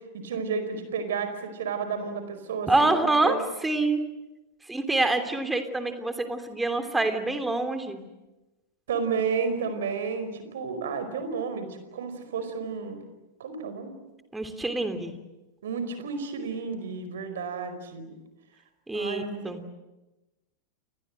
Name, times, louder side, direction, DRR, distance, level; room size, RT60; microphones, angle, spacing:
voice 1, 0.1-3.4 8.9-13.0 13.4-13.9 15.6-18.2 18.9-19.7, right 5 dB, 60° right, 9 dB, 4.9 m, -32 dB
voice 2, 2.7-3.3 3.6-4.0 4.7-8.0 14.3-15.2 18.9-19.6, right 2 dB, 5° right, 8 dB, 3.2 m, -26 dB
30.0 x 22.0 x 7.8 m, 1.0 s
figure-of-eight pair, 90°, 0 cm